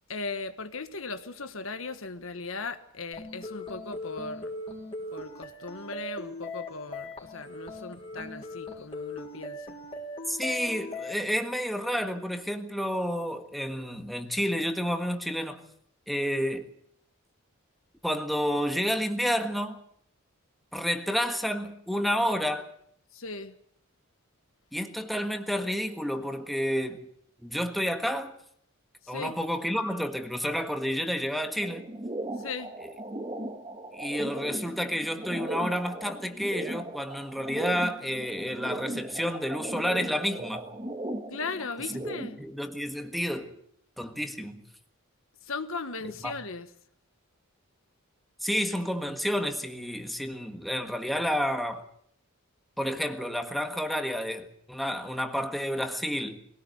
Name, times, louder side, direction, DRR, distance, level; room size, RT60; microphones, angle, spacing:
voice 1, 0.1-4.5 5.1-9.7 23.1-23.6 29.0-29.3 32.4-32.7 41.3-42.4 45.4-46.7, left 4 dB, 70° left, 1.5 m, -38 dB
sound 1, 3.1-11.1, left 2 dB, 25° left, 4.0 m, -39 dB
voice 2, 10.3-15.6 16.1-16.7 18.0-19.8 20.7-22.7 24.7-27.1 27.4-28.3 29.1-31.9 33.9-40.7 41.9-42.1 42.4-43.5 44.0-44.6 46.0-46.3 48.4-51.8 52.8-56.4, equal, ahead, 1.6 m, -30 dB
sound 2, 31.6-42.4, right 1 dB, 25° right, 1.8 m, -37 dB
22.5 x 17.5 x 8.0 m
head